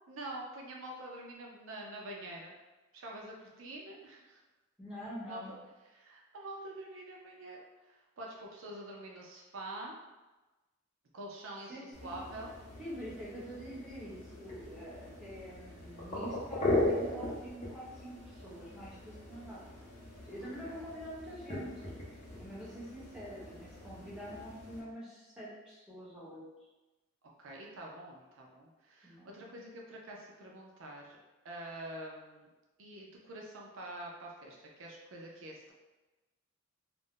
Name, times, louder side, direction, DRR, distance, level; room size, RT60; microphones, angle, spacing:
voice 1, 0.0-2.5 2.9-4.4 5.2-5.4 5.9-10.0 11.1-12.5 20.6-20.8 27.4-31.2 31.4-32.5 32.8-35.7, right 1 dB, 70° right, -1 dB, 0.5 m, -46 dB
voice 2, 4.8-5.5 11.7-12.2 12.8-19.6 20.2-26.7 29.0-29.6, equal, 5° right, -10 dB, 0.9 m, -46 dB
sound 1, 11.9-24.8, left 1 dB, 35° left, 0.7 m, -39 dB
2.4 x 2.1 x 3.6 m, 1.1 s
head